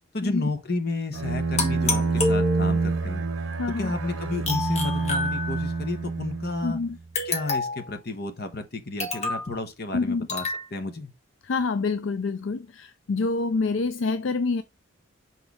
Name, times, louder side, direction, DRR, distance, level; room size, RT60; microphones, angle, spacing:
voice 1, 0.1-3.3 3.8-6.8 7.2-10.4 10.7-11.1, left 2 dB, 50° left, 1.1 m, -32 dB
Bowed string instrument, 1.1-7.0, right 4 dB, 65° right, 0.7 m, -27 dB
sound 1, 1.6-3.0 4.5-5.9 7.2-7.9 9.0-9.5 10.3-10.6, left 3 dB, 30° left, 1.5 m, -28 dB
voice 2, 3.6-3.9 6.6-7.0 9.9-10.3 11.4-14.6, left 4 dB, 65° left, 0.4 m, -27 dB
6.2 x 4.4 x 3.5 m
head